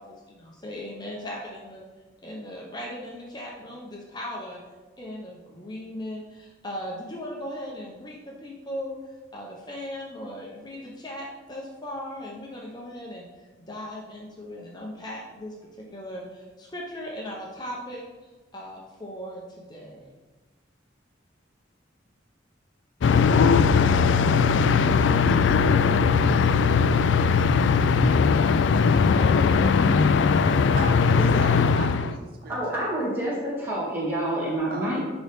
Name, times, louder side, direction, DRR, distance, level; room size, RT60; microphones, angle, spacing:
voice 1, 0.0-1.8 2.2-4.6 5.0-9.0 9.3-18.0 18.5-20.1 29.1-30.6 31.1-31.4, left 1 dB, 20° left, -3 dB, 0.8 m, -37 dB
sound 1, 23.0-32.1, left 5 dB, 75° left, 0.3 m, -19 dB
voice 2, 30.3-32.5 34.7-35.0, right 2 dB, 50° right, 2 dB, 0.6 m, -37 dB
voice 3, 32.5-35.0, right 1 dB, 10° right, -8 dB, 2.4 m, -28 dB
10.5 x 4.0 x 3.6 m, 1.2 s
head